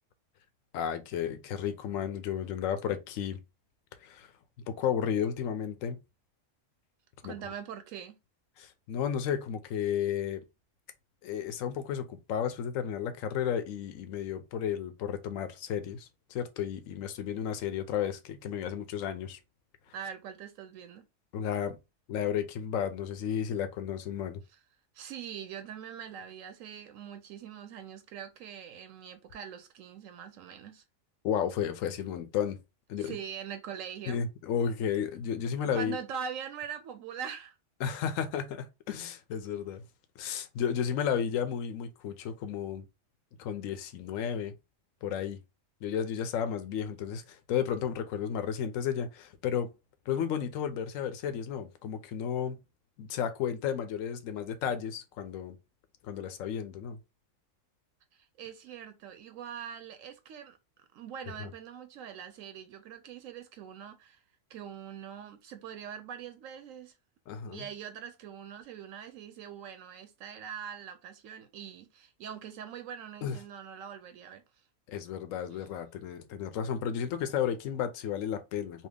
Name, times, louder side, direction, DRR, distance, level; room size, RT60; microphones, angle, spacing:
voice 1, 0.7-3.4 4.0-4.3 4.7-6.0 7.2-7.3 8.6-10.4 11.2-19.4 21.3-21.8 22.1-24.4 31.2-32.6 32.9-33.2 34.1-36.0 37.8-39.8 40.2-42.8 43.4-44.5 45.0-45.4 45.8-49.7 50.1-52.6 53.0-55.5 56.0-57.0 61.4-61.5 67.3-67.7 73.2-73.4 74.9-78.9, left 8 dB, 85° left, 1.0 m, -33 dB
voice 2, 7.2-8.2 19.9-21.1 24.9-30.8 33.0-34.2 35.6-37.6 58.1-64.2 64.5-66.9 67.5-74.4 75.5-75.7, right 8 dB, 85° right, 1.0 m, -43 dB
2.8 x 2.8 x 3.3 m
omnidirectional pair, 1.3 m